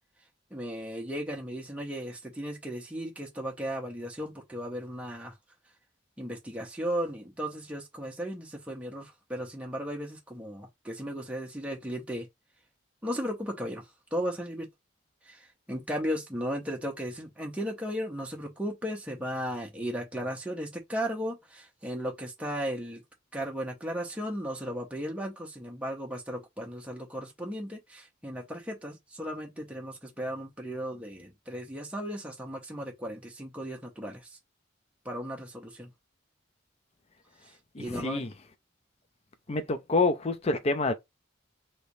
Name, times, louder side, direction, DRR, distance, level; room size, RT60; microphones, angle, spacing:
voice 1, 0.5-5.3 6.2-12.3 13.0-13.8 14.1-14.7 15.2-23.0 23.3-34.4 35.0-35.9 37.8-38.2, equal, 5° right, 0.7 m, -36 dB
voice 2, 37.7-38.3 39.5-40.9, left 3 dB, 30° left, 0.4 m, -27 dB
3.3 x 2.9 x 2.6 m
head